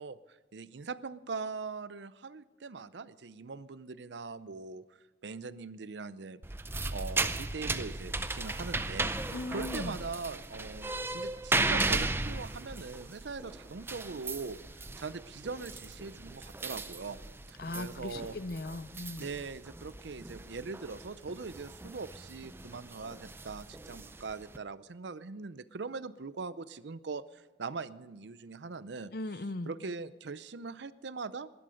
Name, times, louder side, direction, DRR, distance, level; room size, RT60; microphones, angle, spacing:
voice 1, 0.0-4.8 5.2-6.4 6.9-17.2 17.5-18.4 19.2-29.1 29.7-31.5, right 4 dB, 75° right, 16 dB, 0.6 m, -41 dB
sound 1, 6.4-24.6, right 2 dB, 10° right, 0.5 m, -36 dB
voice 2, 9.3-10.0 17.6-19.3 29.1-29.7, left 2 dB, 55° left, 15 dB, 0.6 m, -38 dB
20.0 x 11.5 x 5.1 m, 1.2 s
head